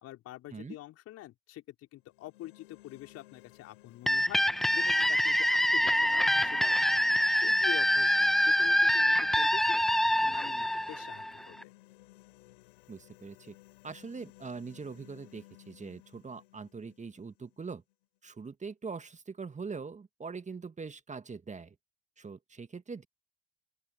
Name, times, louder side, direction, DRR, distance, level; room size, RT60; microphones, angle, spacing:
voice 1, 0.0-4.4 4.7-7.0 7.4-9.8 10.2-11.7, left 15 dB, 55° left, 4.2 m, -46 dB
sound 1, 2.0-18.0, left 19 dB, 70° left, 4.5 m, -57 dB
sound 2, 4.1-11.6, left 1 dB, ahead, 0.3 m, -26 dB
voice 2, 12.9-13.6 13.8-17.8 18.2-21.8 22.2-23.1, right 5 dB, 25° right, 2.0 m, -42 dB
open air
figure-of-eight pair, 55°, 29 cm